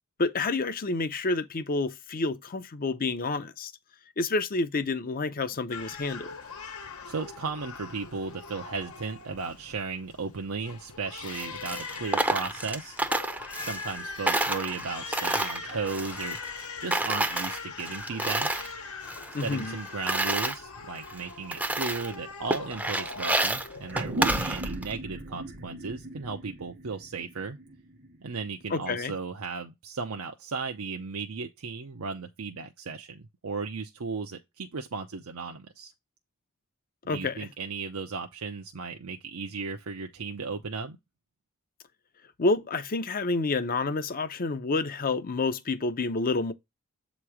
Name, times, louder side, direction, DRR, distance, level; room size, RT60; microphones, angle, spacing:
voice 1, 0.2-3.7 4.2-6.3 19.3-19.8 28.7-29.1 37.1-37.5 42.4-46.5, left 3 dB, 40° left, 0.7 m, -29 dB
Crying sobbing, 5.7-24.5, left 4 dB, 80° left, 1.1 m, -42 dB
voice 2, 7.0-13.0 13.6-16.4 16.8-18.5 19.4-27.6 28.2-35.9 37.1-41.0, right 4 dB, 75° right, 0.7 m, -35 dB
Coin (dropping), 11.2-14.0 14.3-16.6 16.9-18.7 19.0-20.6 21.1-21.2 21.5-22.1 22.5-24.9, right 2 dB, 5° right, 0.6 m, -29 dB
sound 1, 23.9-28.8, right 2 dB, 55° right, 1.0 m, -37 dB
7.8 x 3.1 x 4.8 m
head